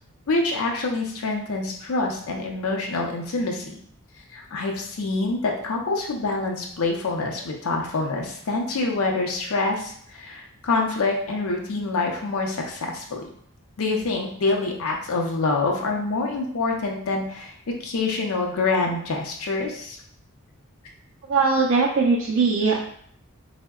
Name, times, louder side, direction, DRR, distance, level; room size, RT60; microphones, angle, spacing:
voice 1, 0.3-3.7 4.3-13.2 13.8-17.5 17.8-20.0, left 3 dB, 80° left, 1 dB, 0.5 m, -26 dB
voice 2, 21.3-22.8, right 4 dB, 60° right, -2 dB, 0.4 m, -20 dB
3.5 x 2.1 x 2.3 m, 0.63 s
head